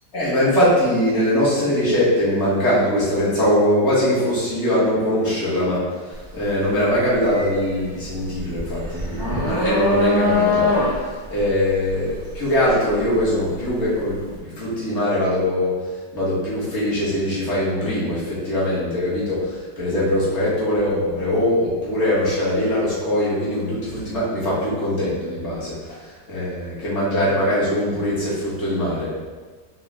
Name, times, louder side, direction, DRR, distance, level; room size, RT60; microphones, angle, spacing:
voice 1, 0.1-10.8 11.3-15.8 16.1-29.1, left 1 dB, 40° left, -9 dB, 1.5 m, -22 dB
sound 1, 6.1-6.4 6.8-13.8, left 2 dB, 20° right, 0.8 m, -23 dB
5.0 x 2.4 x 3.3 m, 1.4 s
omnidirectional pair, 1.9 m